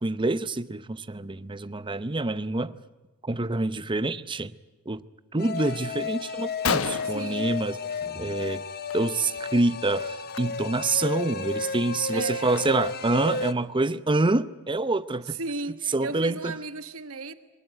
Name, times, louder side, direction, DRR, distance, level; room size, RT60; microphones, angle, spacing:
voice 1, 0.0-2.7 3.2-4.5 4.9-5.0 5.3-8.6 8.9-15.4 15.9-16.5, right 2 dB, 20° right, 0.7 m, -27 dB
sound 1, 5.4-13.5, left 4 dB, 45° left, 0.9 m, -33 dB
voice 2, 5.4-5.8 7.0-7.6 12.1-12.7 15.3-17.3, right 3 dB, 65° right, 1.4 m, -36 dB
Gunshot gunfire, 6.4-6.5 6.6-8.3 8.6-8.9 9.2-9.4 10.2-10.4 10.9-11.0 11.5-13.1, left 5 dB, 65° left, 1.2 m, -32 dB
24.0 x 19.0 x 8.9 m
head